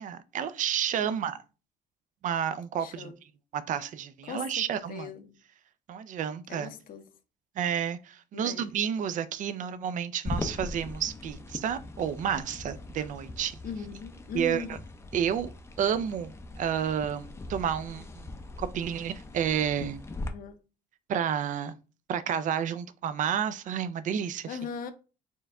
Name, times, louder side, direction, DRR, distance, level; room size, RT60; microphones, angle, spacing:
voice 1, 0.0-1.4 2.2-3.1 3.5-5.1 5.9-6.7 7.6-13.6 14.3-14.6 15.1-15.5 15.8-20.0 21.1-21.8 22.1-24.5, right 8 dB, 50° right, 0.4 m, -30 dB
voice 2, 1.0-1.3 2.8-3.1 4.2-5.4 6.5-7.1 8.3-8.7 13.6-14.8 20.2-20.6 24.5-24.9, left 7 dB, 55° left, 0.6 m, -40 dB
sound 1, 10.2-20.3, left 2 dB, 15° left, 0.5 m, -40 dB
4.4 x 2.2 x 3.6 m
cardioid pair, 110°, 17 cm